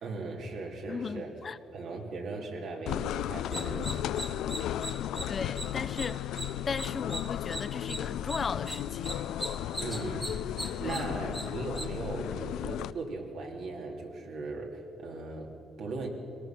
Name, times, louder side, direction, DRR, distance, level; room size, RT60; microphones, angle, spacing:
voice 1, 0.0-1.3 1.7-3.9 9.8-10.4 10.8-16.1, right 3 dB, 75° right, 2.9 m, -38 dB
voice 2, 0.9-1.6 5.3-6.3 6.7-9.1 10.8-11.0, left 5 dB, 40° left, 0.7 m, -36 dB
sound 1, 2.9-12.9, left 11 dB, 85° left, 0.4 m, -35 dB
sound 2, 3.4-11.9, right 1 dB, 10° right, 1.4 m, -41 dB
23.0 x 19.0 x 6.0 m
cardioid pair, 90°, 0 cm